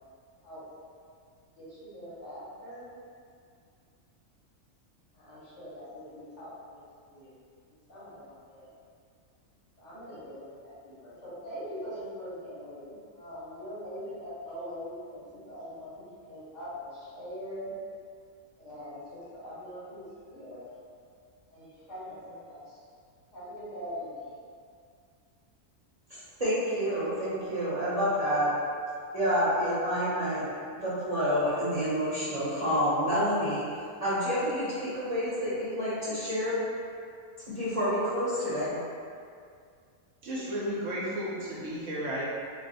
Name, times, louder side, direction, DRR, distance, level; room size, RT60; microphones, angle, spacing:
voice 1, 1.6-2.9 5.1-7.3 7.9-8.7 9.8-17.7 18.6-20.6 21.5-22.8 23.3-24.3, equal, 60° left, -12 dB, 1.7 m, -42 dB
voice 2, 26.1-28.5 29.1-30.5 30.7-33.6 34.0-36.6 37.5-38.7, equal, 35° right, -13 dB, 0.8 m, -28 dB
voice 3, 40.2-42.2, equal, 65° right, -7 dB, 1.0 m, -33 dB
3.2 x 2.0 x 4.0 m, 2.2 s
omnidirectional pair, 1.4 m